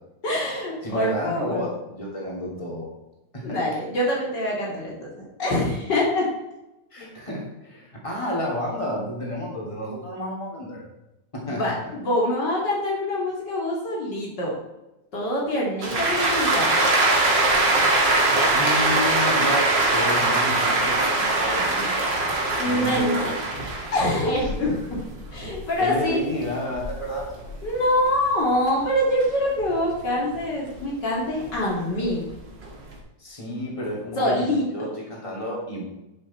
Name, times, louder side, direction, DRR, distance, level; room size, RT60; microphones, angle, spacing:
voice 1, 0.2-1.6 3.4-6.3 11.5-14.6 15.1-16.8 22.6-23.3 23.9-25.0 25.3-26.2 27.6-32.2 34.2-34.7, left 1 dB, 65° left, -3 dB, 3.1 m, -25 dB
voice 2, 0.8-2.9 3.3-3.6 6.9-10.9 11.5-11.6 18.3-22.4 22.6-23.4 25.8-27.3 33.2-35.9, equal, 15° left, -3 dB, 3.1 m, -31 dB
sound 1, 15.8-28.3 28.7-30.8 31.3-32.9, right 2 dB, 65° right, 2.6 m, -23 dB
11.0 x 7.3 x 4.4 m, 0.95 s
omnidirectional pair, 2.1 m